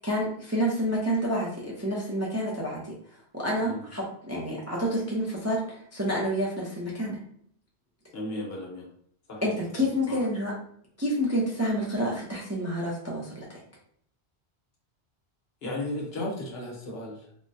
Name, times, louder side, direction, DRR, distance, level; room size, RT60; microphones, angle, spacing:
voice 1, 0.0-2.9 3.3-7.2 9.4-10.5 11.0-13.6, equal, 20° right, -4 dB, 0.4 m, -29 dB
voice 2, 8.1-8.9 9.3-9.5 10.1-10.3 15.6-17.3, left 1 dB, 65° left, -1 dB, 1.1 m, -35 dB
3.6 x 2.1 x 2.6 m, 0.66 s
omnidirectional pair, 1.1 m